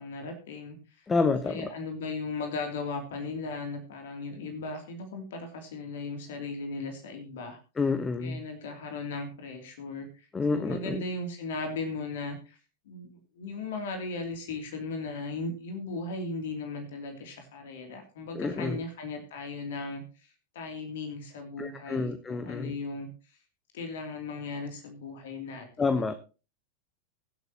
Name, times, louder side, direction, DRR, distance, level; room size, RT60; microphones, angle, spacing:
voice 1, 0.0-1.1 1.4-7.6 8.2-12.6 12.9-20.3 20.5-23.1 23.7-25.8, left 3 dB, 55° left, 5 dB, 2.8 m, -37 dB
voice 2, 1.1-1.7 7.8-8.4 10.3-11.0 18.3-18.8 21.6-22.7 25.8-26.1, left 4 dB, 15° left, 11 dB, 1.0 m, -28 dB
23.0 x 8.1 x 2.9 m, 0.32 s
figure-of-eight pair, 90°, 0 cm